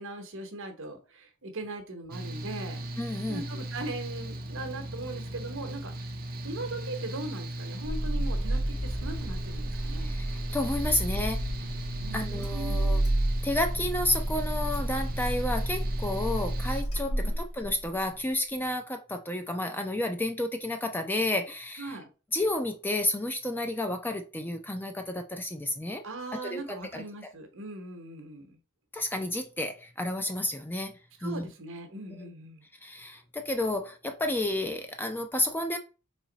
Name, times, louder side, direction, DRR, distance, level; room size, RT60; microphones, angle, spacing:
voice 1, 0.0-2.8 3.3-6.1 6.4-10.2 12.0-13.1 17.0-17.4 21.8-22.1 26.0-28.6 31.2-32.6, right 2 dB, 60° right, 1.0 m, -40 dB
Mechanical fan, 2.1-16.8, right 1 dB, 40° right, 0.6 m, -38 dB
voice 2, 3.0-3.4 10.0-11.4 12.1-13.0 13.4-21.9 22.3-26.0 26.4-26.6 26.9-27.0 28.9-30.9 31.2-31.5 32.8-35.8, left 1 dB, 10° left, 0.4 m, -31 dB
Car / Engine starting, 7.8-17.9, right 1 dB, 85° left, 2.1 m, -31 dB
4.0 x 3.0 x 3.9 m
head